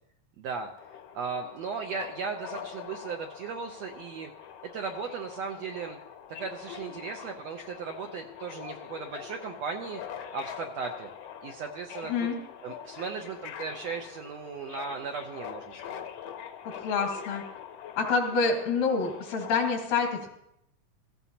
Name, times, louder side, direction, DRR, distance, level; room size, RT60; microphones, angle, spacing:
voice 1, 0.4-0.7 1.1-6.0 6.4-10.0 10.3-11.1 11.4-12.3 12.6-16.1, right 5 dB, 75° right, 2 dB, 1.6 m, -37 dB
Subway metro underground, 0.8-19.6, left 9 dB, 65° left, 1.7 m, -44 dB
voice 2, 16.8-17.4 18.0-20.3, left 4 dB, 85° left, 2 dB, 3.7 m, -27 dB
16.5 x 15.5 x 2.9 m, 0.78 s
omnidirectional pair, 3.8 m